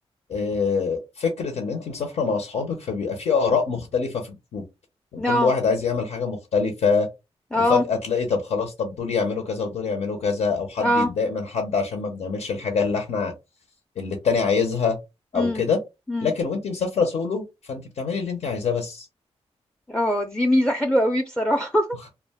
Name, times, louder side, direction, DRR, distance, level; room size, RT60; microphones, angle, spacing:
voice 1, 0.3-4.6 5.1-7.1 7.7-13.3 14.0-15.0 15.3-15.8 16.2-19.1, left 5 dB, 80° left, 0.7 m, -25 dB
voice 2, 5.2-5.5 7.5-7.8 10.8-11.1 15.3-15.6 16.1-16.3 19.9-21.9, equal, 5° left, 0.4 m, -22 dB
2.4 x 2.1 x 3.4 m
cardioid pair, 85°, 11 cm